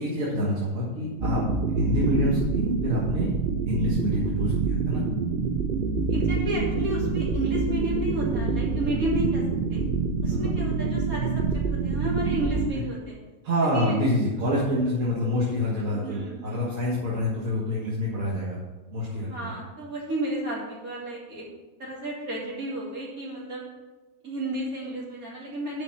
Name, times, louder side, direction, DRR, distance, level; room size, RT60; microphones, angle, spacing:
voice 1, 0.0-1.4 1.8-3.3 3.7-5.0 10.3-10.5 13.4-18.6 18.9-19.5, left 1 dB, 70° right, -6 dB, 2.0 m, -27 dB
sound 1, 1.2-12.7, right 4 dB, 50° right, 0.7 m, -26 dB
voice 2, 6.1-9.4 9.7-9.8 10.2-13.2 13.7-14.0 15.9-16.7 19.3-21.5 21.8-23.7 24.2-25.8, right 1 dB, 85° right, -5 dB, 3.2 m, -32 dB
7.1 x 5.5 x 7.2 m, 1.1 s
omnidirectional pair, 1.5 m